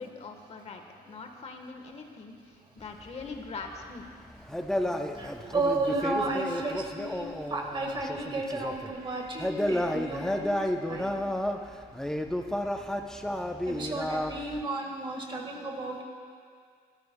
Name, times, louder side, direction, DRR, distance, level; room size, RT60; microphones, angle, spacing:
voice 1, 0.0-4.1, left 4 dB, 40° left, 4 dB, 1.2 m, -42 dB
sound 1, 2.8-8.9 9.3-14.6, left 1 dB, 5° left, 0.6 m, -32 dB
voice 2, 5.2-11.1 13.3-13.4 13.6-16.0, right 2 dB, 30° right, 1 dB, 1.6 m, -33 dB
22.5 x 12.5 x 2.2 m, 2.1 s
cardioid pair, 110°, 17 cm